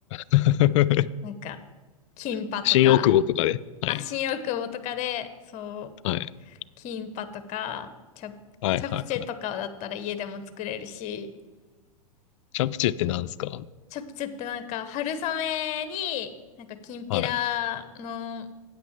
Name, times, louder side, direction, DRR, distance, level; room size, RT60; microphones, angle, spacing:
voice 1, 0.1-1.1 2.6-4.0 6.0-6.3 8.6-9.0 12.5-13.7 17.1-17.3, left 13 dB, 55° left, 17 dB, 0.4 m, -22 dB
voice 2, 1.2-1.6 2.2-3.1 3.9-5.9 6.8-8.4 8.8-11.3 13.9-16.3 16.6-18.6, left 9 dB, 40° left, 11 dB, 0.9 m, -32 dB
8.8 x 6.0 x 7.2 m, 1.3 s
hypercardioid pair, 100°, 19 cm